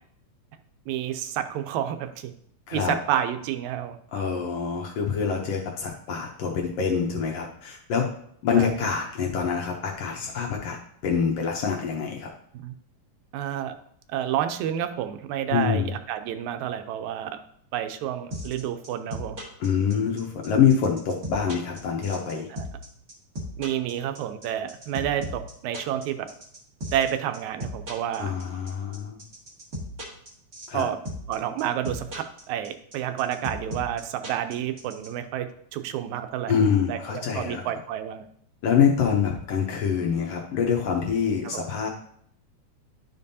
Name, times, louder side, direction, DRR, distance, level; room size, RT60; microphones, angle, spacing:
voice 1, 0.9-2.3 2.7-4.0 8.6-8.7 12.6-12.7 13.3-13.7 14.1-17.4 17.7-19.4 22.6-22.7 23.6-26.3 26.9-28.3 30.7-31.0 31.3-36.5 36.9-38.2 41.5-41.6, right 10 dB, 80° right, 9 dB, 1.9 m, -29 dB
voice 2, 4.1-8.1 8.4-10.8 11.0-12.3 15.5-15.9 19.6-22.5 28.2-29.2 30.7-30.8 36.5-37.6 38.6-41.9, left 7 dB, 70° left, 1 dB, 1.6 m, -25 dB
sound 1, 18.3-35.1, equal, 40° right, 1.4 m, -35 dB
11.0 x 5.3 x 2.7 m, 0.67 s
omnidirectional pair, 3.4 m